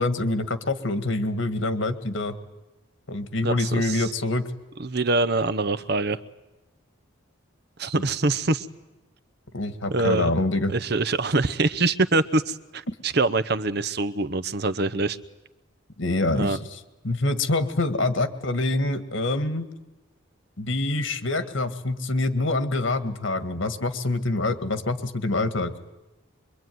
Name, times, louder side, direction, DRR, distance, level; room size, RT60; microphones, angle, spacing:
voice 1, 0.0-2.4 3.1-4.5 7.9-8.0 9.5-10.7 12.9-13.0 16.0-16.8 17.0-19.7 20.6-25.7, left 2 dB, 70° left, 10 dB, 1.8 m, -25 dB
voice 2, 3.4-4.1 4.8-6.2 7.8-8.7 9.9-10.3 10.7-15.2 16.3-16.6, right 3 dB, 50° right, 11 dB, 0.9 m, -24 dB
25.0 x 23.5 x 9.4 m, 1.0 s
head